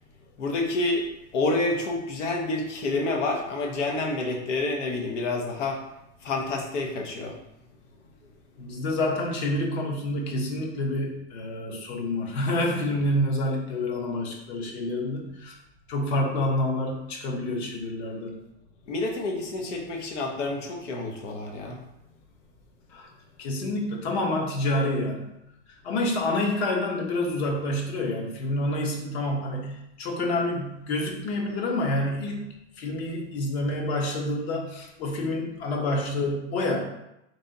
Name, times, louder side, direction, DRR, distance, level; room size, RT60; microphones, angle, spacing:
voice 1, 0.4-1.1 1.3-5.8 6.2-7.3 18.9-21.8, left 2 dB, 90° left, 1 dB, 1.0 m, -28 dB
voice 2, 8.6-15.5 15.9-18.3 22.9-23.1 23.4-25.4 25.8-32.4 32.8-36.8, left 1 dB, 60° left, 0 dB, 1.1 m, -28 dB
3.2 x 2.7 x 4.0 m, 0.86 s
supercardioid pair, 135°, 35 cm